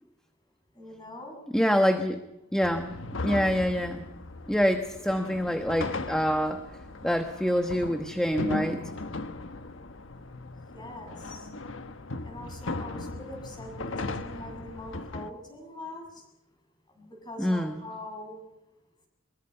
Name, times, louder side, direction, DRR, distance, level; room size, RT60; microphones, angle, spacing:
voice 1, 0.7-1.4 10.7-11.5 12.2-16.3 17.0-18.4, left 1 dB, 20° left, 3 dB, 7.5 m, -43 dB
voice 2, 1.5-2.2 2.5-2.9 3.2-4.1 4.5-8.8 17.4-17.8, equal, 5° left, 5 dB, 1.2 m, -26 dB
sound 1, 2.6-15.3, left 2 dB, 70° left, 1.2 m, -37 dB
24.0 x 23.0 x 5.8 m, 0.95 s
head